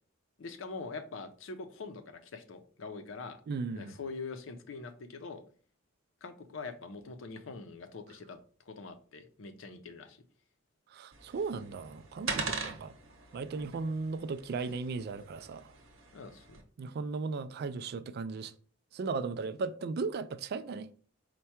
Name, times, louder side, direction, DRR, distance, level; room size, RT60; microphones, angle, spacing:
voice 1, 0.4-3.4 3.7-5.4 6.2-8.4 8.7-10.2 16.1-16.6, left 4 dB, 70° left, 0.6 m, -43 dB
voice 2, 3.5-3.9 10.9-12.9 13.3-15.7 16.8-18.5 18.9-20.9, right 4 dB, 50° right, 0.3 m, -36 dB
sound 1, 11.1-16.6, right 4 dB, 80° right, 0.9 m, -42 dB
4.5 x 2.2 x 4.3 m
head